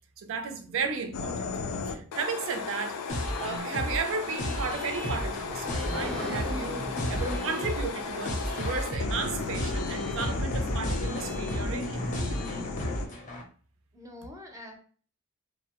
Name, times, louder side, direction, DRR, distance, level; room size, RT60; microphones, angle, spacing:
voice 1, 0.2-1.5 1.9-12.1, right 5 dB, 65° right, 0.4 m, -34 dB
sound 1, 1.1-13.1, left 4 dB, 85° left, 0.4 m, -35 dB
sound 2, 3.1-13.4, equal, 35° left, 0.5 m, -33 dB
sound 3, 4.4-9.1, left 1 dB, 90° right, 0.8 m, -40 dB
voice 2, 13.9-14.8, left 1 dB, 15° right, 0.5 m, -46 dB
2.7 x 2.0 x 2.9 m
head